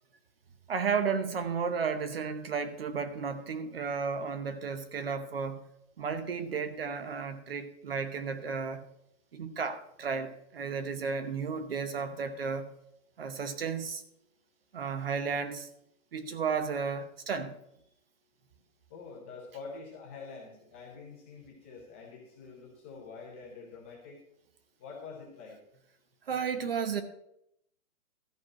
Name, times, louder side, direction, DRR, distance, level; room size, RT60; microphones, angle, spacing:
voice 1, 0.7-5.6 6.0-8.8 9.3-12.7 13.2-14.0 14.7-15.7 16.1-17.6 26.3-27.0, right 5 dB, 45° right, 0.9 m, -33 dB
voice 2, 18.9-24.2 24.8-25.5, left 4 dB, 10° left, 0.7 m, -46 dB
13.5 x 4.7 x 7.4 m
hypercardioid pair, 175°, 42 cm